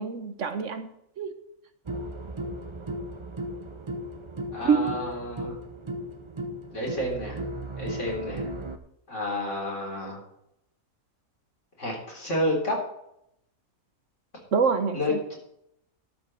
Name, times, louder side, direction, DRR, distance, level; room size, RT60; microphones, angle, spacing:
voice 1, 0.0-1.3 4.6-4.8 14.5-15.2, right 5 dB, 60° right, 9 dB, 1.2 m, -26 dB
sound 1, 1.8-8.8, right 1 dB, 30° right, 0.6 m, -36 dB
voice 2, 4.5-5.6 6.7-7.4 7.8-8.5 9.1-10.2 11.8-12.8 14.9-15.4, left 1 dB, 55° left, -2 dB, 4.1 m, -30 dB
12.5 x 5.4 x 7.6 m, 0.76 s
omnidirectional pair, 1.5 m